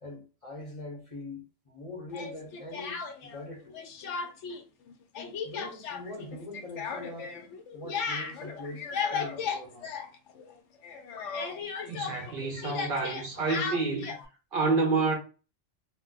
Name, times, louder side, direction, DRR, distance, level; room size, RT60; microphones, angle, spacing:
voice 1, 0.0-3.8 5.2-7.4 7.7-9.9 11.9-12.0, left 2 dB, 35° left, 0.7 m, -43 dB
Speech, 2.1-3.4 3.7-4.6 4.9-10.6 10.8-14.3, left 5 dB, 90° left, 0.9 m, -36 dB
voice 2, 11.9-14.1 14.5-15.2, right 3 dB, 55° right, 0.7 m, -28 dB
2.4 x 2.1 x 3.8 m
omnidirectional pair, 1.2 m